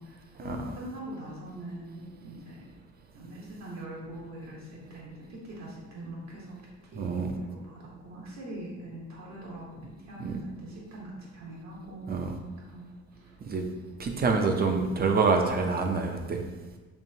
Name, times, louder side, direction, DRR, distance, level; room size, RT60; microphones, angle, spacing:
voice 1, 0.0-2.7 3.1-6.6 6.9-12.9 13.2-13.3, right 1 dB, 60° right, -4 dB, 1.1 m, -42 dB
voice 2, 7.0-7.3 10.2-10.4 12.1-12.3 13.4-13.6 14.0-16.4, right 4 dB, 30° right, 4 dB, 0.6 m, -26 dB
4.5 x 3.0 x 2.7 m, 1.2 s
cardioid pair, 90°, 30 cm